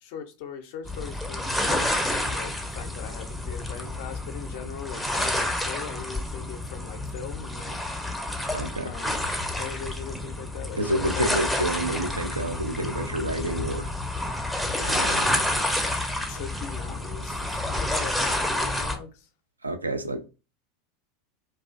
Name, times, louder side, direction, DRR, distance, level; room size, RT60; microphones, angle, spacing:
voice 1, 0.0-2.0 2.3-7.7 8.8-9.3 9.5-11.5 14.7-19.3, left 7 dB, 55° left, 0.5 m, -40 dB
sound 1, 0.9-19.0, left 1 dB, 5° left, 0.5 m, -29 dB
voice 2, 8.5-8.9 10.8-13.9 14.8-15.2 19.6-20.3, right 1 dB, 85° right, 0.3 m, -29 dB
2.4 x 2.2 x 2.4 m
figure-of-eight pair, 85°, 0 cm